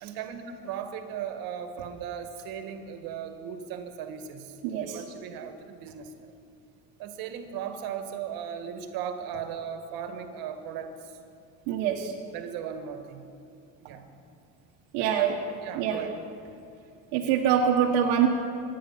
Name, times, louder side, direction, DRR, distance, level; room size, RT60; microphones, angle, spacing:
voice 1, 0.0-6.3 7.0-11.2 12.3-13.3 13.8-14.1 15.0-15.3 15.6-16.1, right 8 dB, 60° right, 7 dB, 1.8 m, -37 dB
voice 2, 4.6-5.0 11.7-12.1 14.9-15.3 15.7-16.0 17.1-18.3, right 9 dB, 75° right, 0 dB, 1.5 m, -24 dB
24.5 x 10.0 x 5.8 m, 2.5 s
cardioid pair, 140°, 39 cm